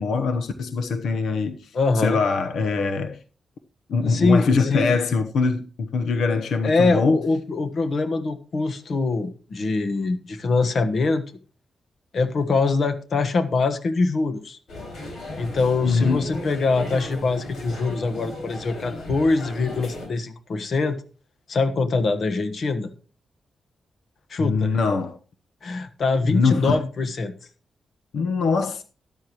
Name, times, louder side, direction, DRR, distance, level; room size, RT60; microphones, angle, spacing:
voice 1, 0.0-3.2 3.9-7.2 15.8-16.2 24.4-25.2 26.2-26.8 28.1-28.8, left 4 dB, 85° left, 0.9 m, -23 dB
voice 2, 1.7-2.2 4.0-5.0 6.6-11.2 12.1-14.6 15.4-21.0 21.5-22.9 24.3-24.8 25.6-27.3, left 3 dB, 55° left, 1.3 m, -23 dB
sound 1, 14.7-20.1, left 2 dB, 70° left, 5.1 m, -35 dB
13.0 x 11.5 x 3.0 m
wide cardioid pair, 125°, 0 cm